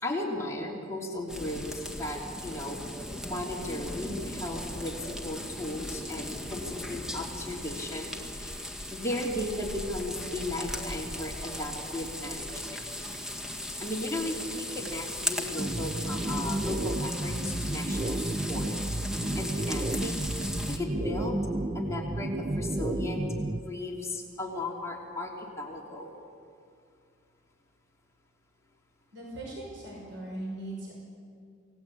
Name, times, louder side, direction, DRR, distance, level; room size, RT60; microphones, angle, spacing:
voice 1, 0.0-2.8 3.2-8.6 8.9-12.8 13.8-18.8 19.3-21.4 21.7-26.1, left 1 dB, 15° left, -2 dB, 3.1 m, -36 dB
sound 1, 1.3-20.8, left 1 dB, 5° right, 1.9 m, -37 dB
sound 2, 15.6-23.6, right 1 dB, 25° right, 0.6 m, -32 dB
voice 2, 29.1-30.9, right 1 dB, 65° right, -2 dB, 5.7 m, -39 dB
28.0 x 19.0 x 8.6 m, 2.3 s
head